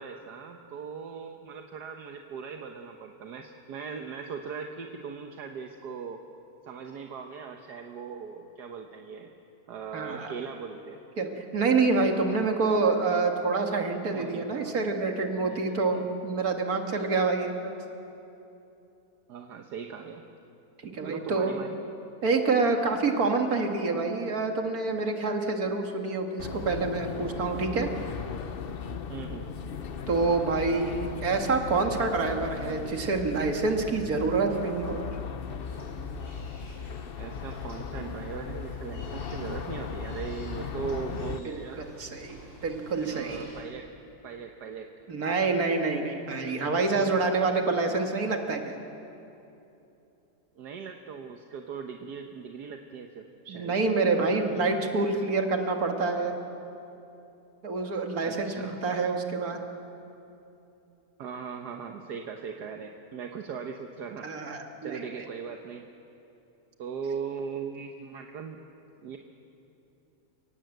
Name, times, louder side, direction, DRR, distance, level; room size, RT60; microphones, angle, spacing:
voice 1, 0.0-6.2 6.6-9.3 9.7-11.0 14.1-14.7 15.4-16.0 19.3-20.2 21.0-21.8 29.1-29.5 37.2-41.9 43.0-43.9 44.2-44.9 50.6-53.8 58.2-58.8 61.2-64.3 64.8-65.9 66.8-68.6 69.0-69.2, right 6 dB, 80° right, 4 dB, 1.6 m, -39 dB
voice 2, 9.9-10.3 11.2-17.8 20.8-21.5 22.2-27.9 30.1-35.2 41.8-43.5 45.1-48.8 53.5-56.4 57.6-59.6 64.2-65.0, right 3 dB, 60° right, 3 dB, 2.4 m, -27 dB
sound 1, 26.4-41.4, left 6 dB, 50° left, 0.8 m, -37 dB
sound 2, 35.6-43.6, left 1 dB, 65° left, 6.2 m, -50 dB
29.5 x 18.0 x 8.0 m, 2.9 s
omnidirectional pair, 1.8 m